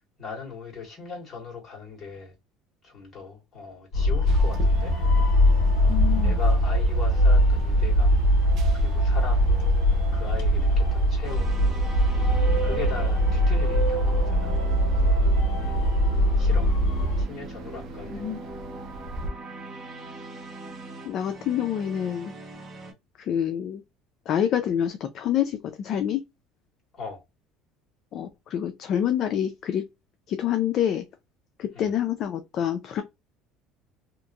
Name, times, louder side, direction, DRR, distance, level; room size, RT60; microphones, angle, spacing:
voice 1, 0.2-2.3 2.8-4.9 6.2-8.2 8.8-9.5 10.1-11.5 12.6-14.6 14.9-15.9 16.4-16.7 17.2-18.2 26.9-27.2 31.7-31.9, left 5 dB, 30° left, 1.7 m, -39 dB
sound 1, 3.9-17.2, equal, 70° left, 1.5 m, -21 dB
sound 2, 4.3-19.3, right 2 dB, 50° right, 0.6 m, -39 dB
voice 2, 5.9-6.4 18.1-18.4 21.0-22.3 23.2-23.8 24.3-26.2 28.1-29.8 30.3-31.0 31.6-33.0, left 9 dB, 50° left, 0.4 m, -27 dB
sound 3, 11.2-22.9, right 2 dB, 25° right, 1.0 m, -41 dB
2.9 x 2.5 x 2.3 m
cardioid pair, 130°, 0 cm